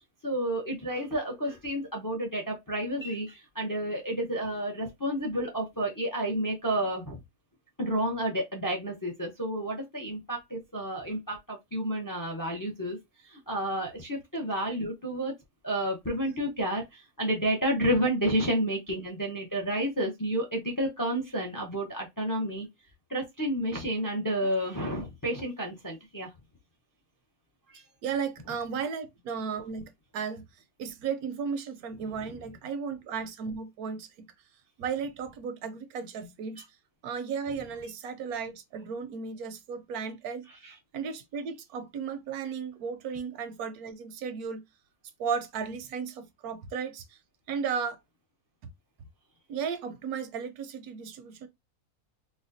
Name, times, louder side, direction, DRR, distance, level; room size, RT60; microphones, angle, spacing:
voice 1, 0.2-7.2 7.8-13.0 13.3-15.3 15.6-22.7 23.1-26.3 27.7-27.8 40.6-40.7, right 1 dB, 25° left, 0.5 m, -30 dB
voice 2, 27.7-30.5 30.8-34.3 34.8-36.6 37.0-40.5 40.9-44.6 45.2-47.2 47.5-48.0 49.5-51.5, right 6 dB, 80° right, 1.1 m, -35 dB
4.1 x 2.2 x 2.6 m
omnidirectional pair, 1.5 m